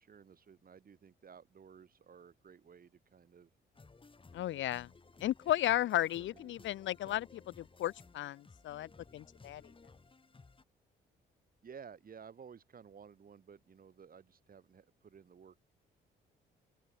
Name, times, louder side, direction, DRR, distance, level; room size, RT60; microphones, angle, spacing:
voice 1, 0.0-3.5 4.4-4.7 6.0-6.7 7.0-7.2 11.6-15.6, right 7 dB, 45° right, 4.5 m, -55 dB
sound 1, 3.7-10.6, left 4 dB, 25° left, 5.9 m, -59 dB
voice 2, 4.3-4.9 5.2-9.6, left 13 dB, 75° left, 0.8 m, -34 dB
open air
cardioid pair, 90°, 20 cm